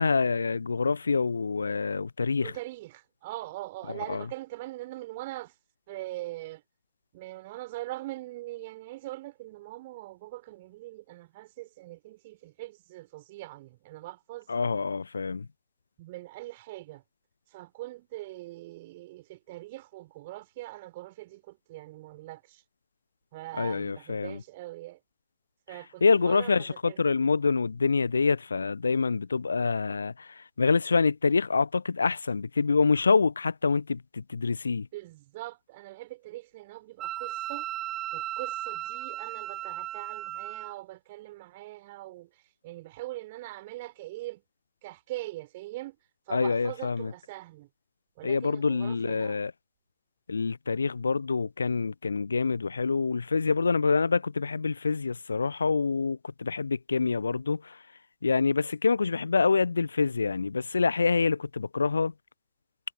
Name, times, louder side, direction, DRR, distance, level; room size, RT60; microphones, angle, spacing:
voice 1, 0.0-2.6 3.9-4.3 14.5-15.5 23.5-24.4 26.0-34.9 46.3-47.1 48.2-49.5 50.3-57.8 58.2-62.1, left 4 dB, 75° left, 0.7 m, -26 dB
voice 2, 2.4-5.6 5.9-6.6 7.1-14.5 16.0-17.0 17.5-22.6 23.3-25.0 25.7-27.0 34.7-37.7 38.1-44.4 44.8-46.0 46.2-47.7 48.2-49.4, right 18 dB, 50° right, 4.5 m, -42 dB
Wind instrument woodwind instrument, 37.0-40.7, right 13 dB, 30° right, 1.6 m, -35 dB
figure-of-eight pair, 90°, 0 cm